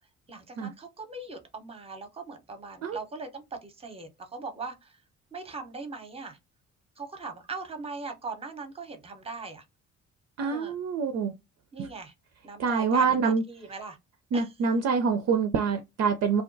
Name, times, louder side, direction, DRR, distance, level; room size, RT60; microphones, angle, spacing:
voice 1, 0.3-5.0 5.3-6.4 7.0-9.6 10.4-10.8 11.7-12.1 12.4-14.0 14.3-14.5, right 4 dB, 15° right, 0.7 m, -40 dB
voice 2, 10.4-11.3 12.6-13.4 14.3-16.4, right 5 dB, 45° right, 0.4 m, -25 dB
2.4 x 2.2 x 2.5 m
hypercardioid pair, 50°, 37 cm